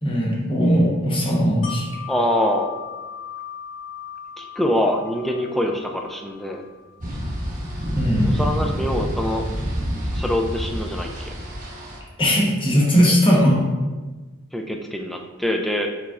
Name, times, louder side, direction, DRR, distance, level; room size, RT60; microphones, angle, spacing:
voice 1, 0.0-1.8 7.9-8.3 12.2-13.6, equal, 25° left, -4 dB, 1.0 m, -18 dB
Wind chime, 1.6-7.4 7.8-7.9, left 8 dB, 75° left, 1.3 m, -38 dB
voice 2, 2.1-2.7 4.4-6.6 8.3-9.5 10.1-11.3 14.5-15.9, left 1 dB, ahead, 2 dB, 0.3 m, -24 dB
sound 1, 7.0-12.0, equal, 40° right, 0.9 m, -27 dB
4.7 x 4.1 x 2.4 m, 1.3 s
head